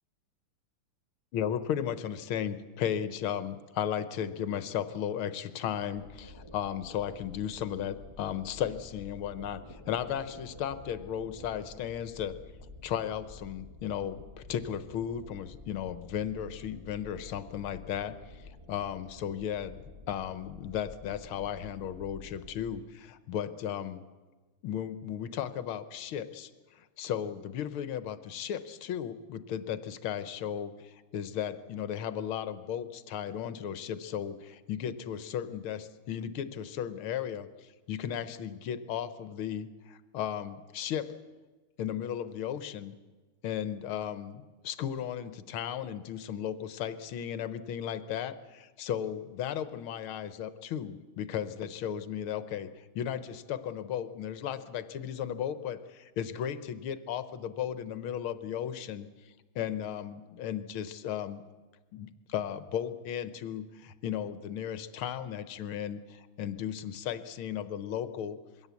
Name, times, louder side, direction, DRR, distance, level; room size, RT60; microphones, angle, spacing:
voice 1, 1.3-12.4 12.8-24.0 24.6-41.1 41.8-42.9 43.4-59.1 59.5-61.4 61.9-68.4, left 9 dB, 80° left, 13 dB, 1.8 m, -35 dB
sound 1, 6.0-22.8, left 2 dB, 15° right, 1.1 m, -50 dB
22.0 x 16.5 x 8.3 m, 1.3 s
omnidirectional pair, 2.3 m